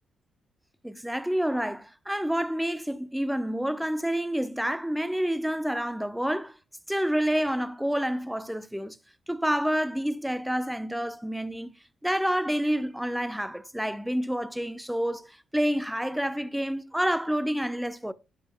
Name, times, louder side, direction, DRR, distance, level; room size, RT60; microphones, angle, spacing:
voice 1, 0.8-6.6 6.9-9.0 9.3-11.7 12.0-18.1, equal, 5° right, 0.7 m, -28 dB
10.5 x 9.8 x 2.2 m
hypercardioid pair, 45°, 0 cm